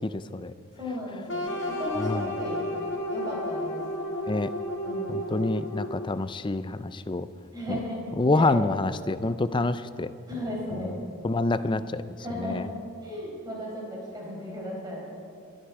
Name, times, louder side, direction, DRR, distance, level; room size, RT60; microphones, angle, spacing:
voice 1, 0.8-2.7 3.1-3.8 4.8-5.3 7.5-8.0 8.3-8.6 10.3-11.0 12.2-15.1, left 1 dB, 20° right, -3 dB, 4.6 m, -35 dB
sound 1, 1.3-6.2, left 1 dB, 55° left, 2.0 m, -32 dB
voice 2, 5.1-7.3 7.7-7.8 8.2-10.1 11.2-12.0 12.4-12.6, left 2 dB, 20° left, 13 dB, 0.4 m, -27 dB
23.0 x 12.0 x 4.8 m, 2.4 s
head